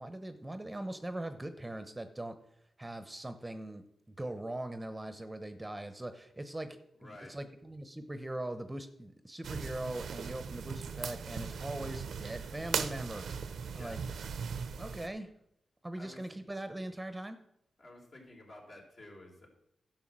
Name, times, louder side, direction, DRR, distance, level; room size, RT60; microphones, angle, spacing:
voice 1, 0.0-2.3 2.8-13.4 13.7-14.0 14.8-15.3 15.8-17.4, right 1 dB, 15° right, 9 dB, 0.9 m, -41 dB
voice 2, 6.9-7.3 13.7-14.0 16.0-16.2 17.8-19.5, left 1 dB, 55° left, -1 dB, 3.8 m, -52 dB
sound 1, 9.4-15.1, right 6 dB, 80° right, 0.7 m, -39 dB
11.0 x 5.8 x 7.4 m, 0.78 s
cardioid pair, 70°, 0 cm